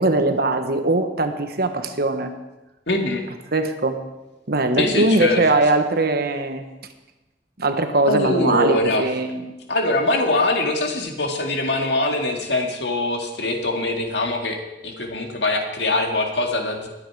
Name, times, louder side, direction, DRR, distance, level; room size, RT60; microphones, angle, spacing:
voice 1, 0.0-2.3 3.5-4.0 4.5-6.6 7.6-9.4, right 2 dB, 60° right, 7 dB, 1.3 m, -21 dB
voice 2, 2.9-3.2 4.8-5.4 8.1-9.1 9.7-14.6 14.8-16.9, left 2 dB, 70° left, 3 dB, 2.0 m, -23 dB
20.5 x 9.2 x 4.8 m, 1.0 s
head